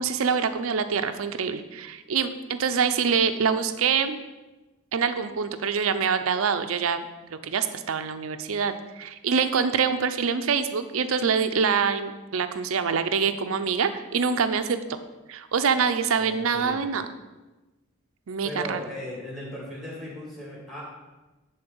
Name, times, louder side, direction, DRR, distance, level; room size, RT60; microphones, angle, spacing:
voice 1, 0.0-4.2 4.9-15.0 15.3-17.1 18.3-18.8, right 6 dB, 75° right, 9 dB, 0.5 m, -25 dB
voice 2, 16.2-16.8 18.4-20.8, left 1 dB, ahead, -4 dB, 2.7 m, -37 dB
10.5 x 3.9 x 5.4 m, 1.1 s
head